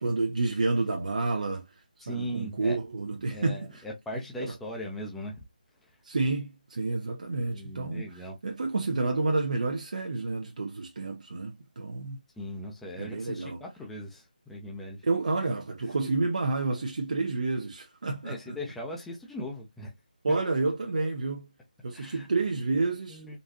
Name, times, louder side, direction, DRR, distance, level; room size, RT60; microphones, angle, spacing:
voice 1, 0.0-3.8 4.4-4.5 6.0-12.2 12.9-13.6 15.0-18.6 20.2-21.5 21.8-23.4, right 3 dB, 55° right, 0.7 m, -30 dB
voice 2, 2.0-2.8 3.3-5.4 5.8-5.9 7.5-8.4 12.4-15.1 16.0-16.1 18.2-19.9 20.3-20.4 21.9-22.3 23.1-23.4, equal, 5° left, 0.6 m, -39 dB
4.0 x 2.4 x 2.7 m
figure-of-eight pair, 160°, 5 cm